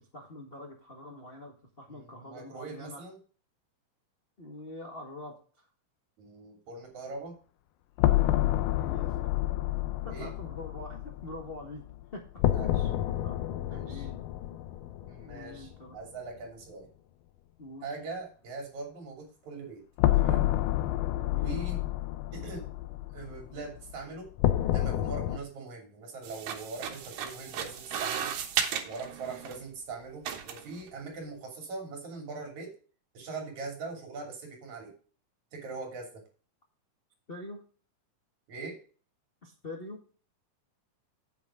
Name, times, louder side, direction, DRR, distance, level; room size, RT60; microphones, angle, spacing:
voice 1, 0.1-3.0 4.4-5.7 8.5-9.3 10.0-11.8 12.1-12.4 13.2-14.2 15.0-16.0 17.6-17.9 21.2-21.6 29.4-29.5 37.3-37.6 39.4-40.0, left 2 dB, 35° left, 0 dB, 0.9 m, -45 dB
voice 2, 1.9-3.2 6.2-7.4 10.1-10.3 12.5-12.9 13.6-14.1 15.1-16.9 17.8-19.8 20.1-20.5 21.4-21.8 22.3-22.7 23.1-24.3 24.7-28.4 28.9-32.8 33.1-34.9 35.5-36.2 38.5-38.8, right 3 dB, 60° right, 2 dB, 4.1 m, -41 dB
sound 1, 8.0-15.8 16.1-16.2 20.0-25.4, left 14 dB, 80° left, 2.3 m, -29 dB
sound 2, 26.2-29.6 30.3-30.8, right 8 dB, 85° right, 3.0 m, -35 dB
9.3 x 8.4 x 3.7 m, 0.40 s
omnidirectional pair, 3.8 m